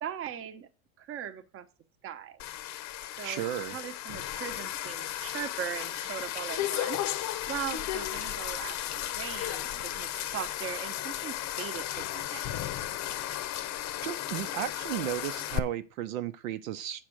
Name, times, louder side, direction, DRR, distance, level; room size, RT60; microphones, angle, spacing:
voice 1, 0.0-0.7 1.0-1.7 2.0-2.4 3.2-7.0 7.5-12.4, right 9 dB, 30° right, 1.0 m, -39 dB
sound 1, 2.4-15.6, left 13 dB, 40° left, 0.8 m, -34 dB
voice 2, 3.2-3.8 14.0-17.1, right 12 dB, 70° right, 0.9 m, -34 dB
7.6 x 5.7 x 6.4 m
supercardioid pair, 120°, 42 cm